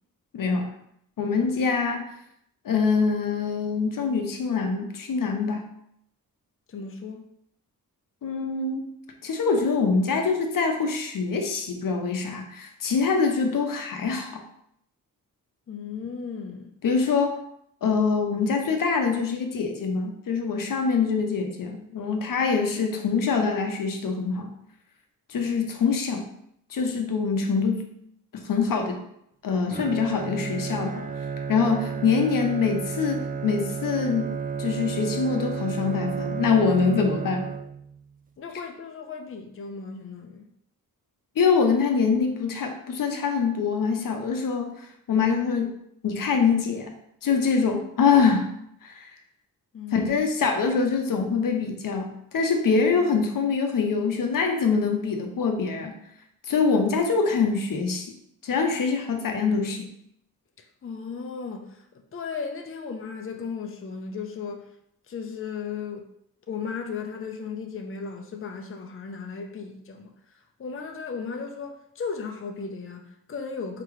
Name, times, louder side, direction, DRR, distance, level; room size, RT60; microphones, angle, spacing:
voice 1, 0.3-0.7 1.2-2.1 2.6-5.6 8.2-8.9 9.2-14.4 16.8-17.4 17.8-24.5 25.3-26.3 26.7-27.8 28.3-29.0 29.4-31.0 31.5-34.3 34.6-37.5 41.4-44.8 45.1-45.7 46.0-47.0 47.2-48.5 48.8-49.1 49.9-56.0 56.5-58.1 58.4-59.9, left 5 dB, 70° left, 4 dB, 0.8 m, -24 dB
voice 2, 6.7-7.2 15.7-16.7 38.4-40.4 49.7-50.1 60.8-61.8 62.1-64.6 65.1-66.0 66.5-70.1 70.6-73.8, left 5 dB, 40° left, 3 dB, 0.6 m, -35 dB
Bowed string instrument, 29.7-38.0, right 6 dB, 25° right, 0.4 m, -32 dB
4.7 x 2.9 x 3.1 m, 0.73 s
cardioid pair, 75°, 34 cm